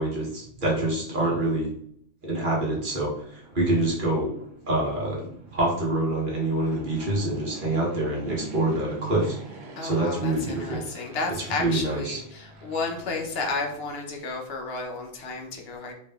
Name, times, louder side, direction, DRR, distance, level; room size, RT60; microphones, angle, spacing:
voice 1, 0.0-1.7 2.2-4.3 4.7-9.4 9.8-10.8 11.3-12.2, right 2 dB, 45° right, -3 dB, 1.1 m, -26 dB
Fixed-wing aircraft airplane, 3.2-14.2, right 4 dB, 80° right, 1.1 m, -45 dB
voice 2, 9.8-15.9, left 3 dB, 60° left, 2 dB, 0.8 m, -32 dB
3.6 x 2.8 x 2.2 m, 0.66 s
omnidirectional pair, 1.3 m